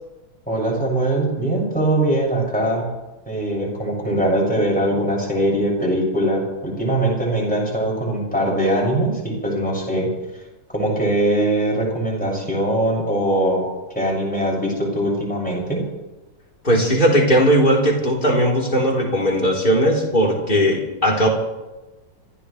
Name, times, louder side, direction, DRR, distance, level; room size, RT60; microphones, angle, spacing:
voice 1, 0.5-2.8 3.3-10.1 10.7-13.6 13.9-15.8, right 1 dB, 5° left, -4 dB, 6.5 m, -21 dB
voice 2, 16.6-21.3, equal, 25° left, -3 dB, 3.9 m, -18 dB
27.0 x 15.5 x 3.4 m, 1.1 s
omnidirectional pair, 2.1 m